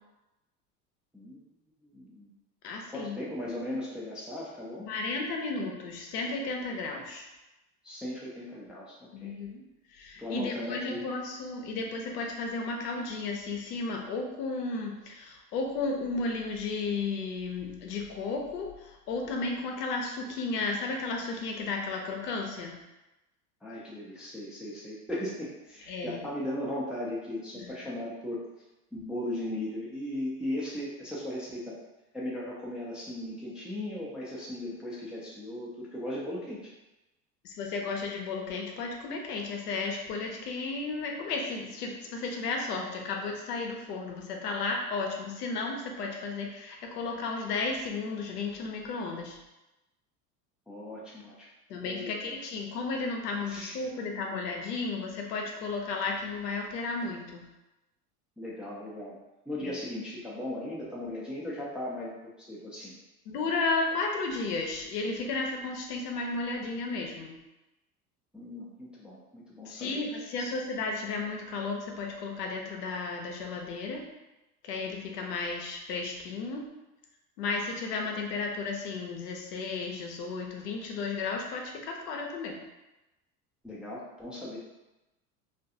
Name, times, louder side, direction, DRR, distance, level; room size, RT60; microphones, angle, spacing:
voice 1, 1.9-2.3 2.9-4.9 7.8-9.4 10.2-11.1 23.6-28.4 28.9-31.8 32.1-36.7 50.7-51.5 51.8-52.3 53.5-53.8 58.4-59.2 59.5-62.9 68.3-70.0 70.4-70.5 83.6-84.6, left 1 dB, ahead, -6 dB, 0.3 m, -37 dB
voice 2, 2.6-3.2 4.9-7.3 9.1-9.6 9.9-22.7 25.9-26.2 27.6-27.7 37.4-49.4 51.7-57.4 59.6-59.7 63.3-67.4 69.7-74.0 74.6-76.6 77.4-82.6, left 3 dB, 85° left, 1 dB, 0.7 m, -33 dB
2.5 x 2.2 x 2.7 m, 0.99 s
hypercardioid pair, 85°, 47 cm